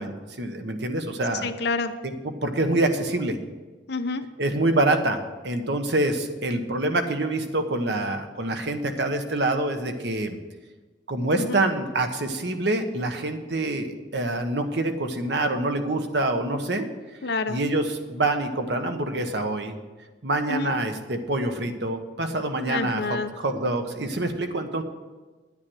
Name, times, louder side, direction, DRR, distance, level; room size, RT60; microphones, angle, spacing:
voice 1, 0.0-1.5 2.0-3.4 4.4-10.4 11.1-16.9 17.5-19.7 20.2-24.8, right 2 dB, 60° right, 6 dB, 1.2 m, -26 dB
voice 2, 1.4-1.9 3.9-4.2 11.4-11.6 17.2-17.6 20.5-20.7 22.7-23.3, left 3 dB, 60° left, 8 dB, 0.6 m, -28 dB
10.0 x 9.6 x 6.2 m, 1.3 s
head